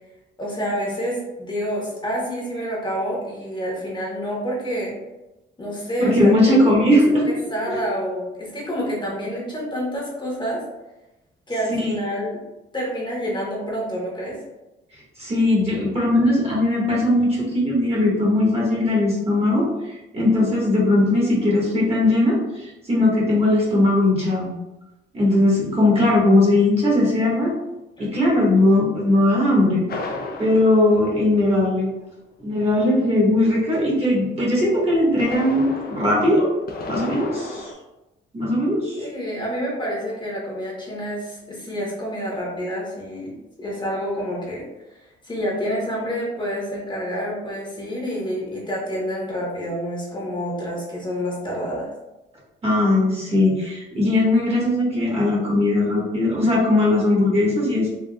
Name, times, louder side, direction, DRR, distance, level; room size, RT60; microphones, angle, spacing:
voice 1, 0.4-5.0 5.6-6.3 6.9-10.6 11.5-12.3 12.7-14.4 28.0-28.1 39.0-44.7 45.0-51.9, equal, 25° left, -4 dB, 1.0 m, -28 dB
voice 2, 6.0-7.3 7.7-7.8 11.8-11.9 15.2-24.5 25.1-27.5 28.0-29.8 30.4-31.9 32.4-36.5 36.9-37.7 38.3-39.1 52.6-57.9, left 1 dB, 30° right, -5 dB, 1.3 m, -19 dB
sound 1, 29.9-32.0 34.9-37.7, left 2 dB, 50° left, 0.6 m, -33 dB
3.7 x 2.5 x 2.2 m, 0.99 s
cardioid pair, 90°, 20 cm